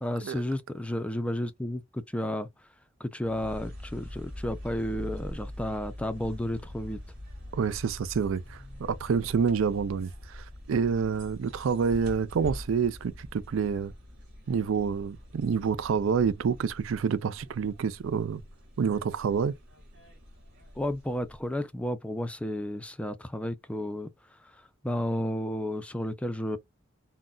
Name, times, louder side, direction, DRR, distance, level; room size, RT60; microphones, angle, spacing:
voice 1, 0.0-2.5 3.0-7.0 20.8-24.1 24.8-26.6, left 1 dB, 5° left, 0.3 m, -32 dB
sound 1, 3.2-21.7, left 1 dB, 60° right, 1.8 m, -44 dB
voice 2, 7.5-13.9 14.5-18.4 18.8-19.5, right 6 dB, 80° right, 0.4 m, -28 dB
3.8 x 2.1 x 2.2 m
head